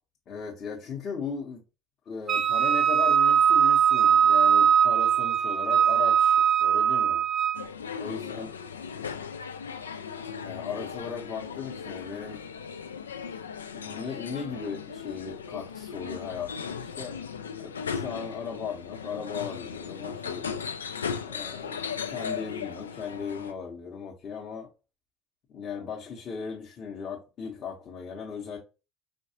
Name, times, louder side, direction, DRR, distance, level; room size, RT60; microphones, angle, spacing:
voice 1, 0.3-1.6 2.1-7.2 8.0-8.5 10.4-12.4 13.7-17.2 17.6-20.5 21.2-21.8 22.1-24.7 25.5-28.6, left 6 dB, 40° left, 1.0 m, -37 dB
Wind instrument woodwind instrument, 2.3-7.6, right 8 dB, 35° right, 0.4 m, -21 dB
sound 1, 7.5-23.5, left 6 dB, 80° left, 0.3 m, -37 dB
4.6 x 2.5 x 2.8 m
figure-of-eight pair, 60°, 0 cm